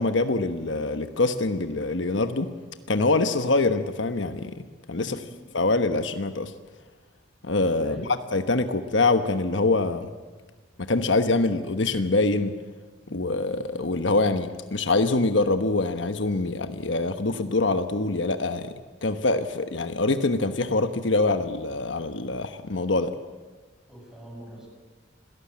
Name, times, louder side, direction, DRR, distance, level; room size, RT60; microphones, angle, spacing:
voice 1, 0.0-2.5 2.9-5.2 5.5-6.5 7.4-10.1 10.9-12.5 13.1-18.7 19.0-23.1, left 2 dB, 70° left, 9 dB, 1.2 m, -24 dB
voice 2, 4.9-5.4 7.5-8.1 23.9-24.7, right 1 dB, 5° right, 0 dB, 6.5 m, -44 dB
26.5 x 17.5 x 8.7 m, 1.3 s
head